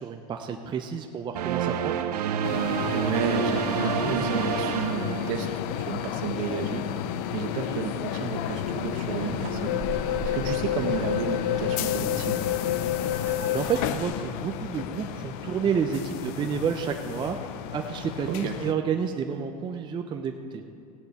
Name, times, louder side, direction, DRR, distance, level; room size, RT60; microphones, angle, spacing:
voice 1, 0.0-2.0 13.0-20.7, right 7 dB, 25° right, 5 dB, 0.6 m, -30 dB
sound 1, 1.3-5.8, right 9 dB, 85° right, 0.8 m, -29 dB
sound 2, 2.4-18.7, left 11 dB, 55° left, 0.6 m, -30 dB
voice 2, 2.9-5.5 5.8-6.8 7.3-9.8 10.3-12.4 18.3-18.5, right 7 dB, 60° right, 5 dB, 1.5 m, -32 dB
sound 3, 8.5-14.0, right 5 dB, 45° right, 1.0 m, -40 dB
16.0 x 10.0 x 4.2 m, 2.5 s
hypercardioid pair, 115°, 20 cm